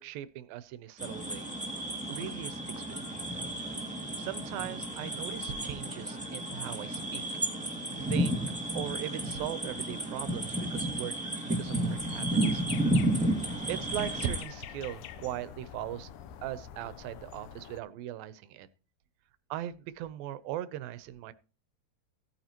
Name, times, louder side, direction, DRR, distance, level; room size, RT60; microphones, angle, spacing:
voice 1, 0.0-3.2 4.2-7.2 8.1-8.4 8.7-12.6 13.7-16.1 16.4-18.7 19.5-21.3, right 12 dB, 85° right, 14 dB, 2.5 m, -39 dB
sound 1, 1.0-14.4, right 1 dB, 5° right, 1.0 m, -32 dB
sound 2, 11.6-17.8, left 9 dB, 75° left, 2.0 m, -46 dB
16.0 x 9.2 x 2.9 m, 0.35 s
omnidirectional pair, 4.1 m